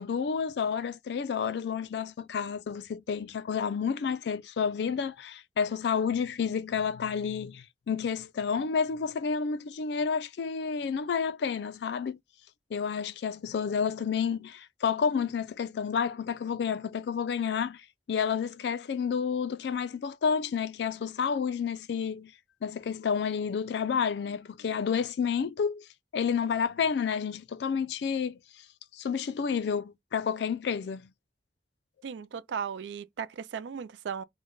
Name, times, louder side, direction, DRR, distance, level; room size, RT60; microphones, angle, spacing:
voice 1, 0.0-12.2 12.7-22.3 22.6-25.9 26.1-28.4 28.9-31.1, left 6 dB, 70° left, 0.3 m, -30 dB
voice 2, 32.0-34.2, right 7 dB, 80° right, 0.4 m, -36 dB
3.1 x 2.1 x 3.7 m
head